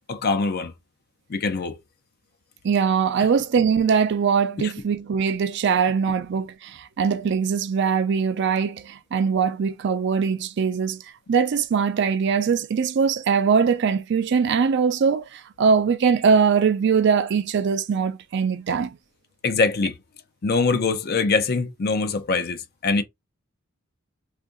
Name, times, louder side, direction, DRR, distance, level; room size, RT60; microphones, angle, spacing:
voice 1, 0.1-0.7 1.3-1.8 4.6-4.7 19.4-20.0 20.4-23.0, left 4 dB, 50° left, 0.5 m, -23 dB
voice 2, 2.6-11.0 11.3-19.0, right 6 dB, 55° right, 0.4 m, -21 dB
2.6 x 2.5 x 3.7 m
head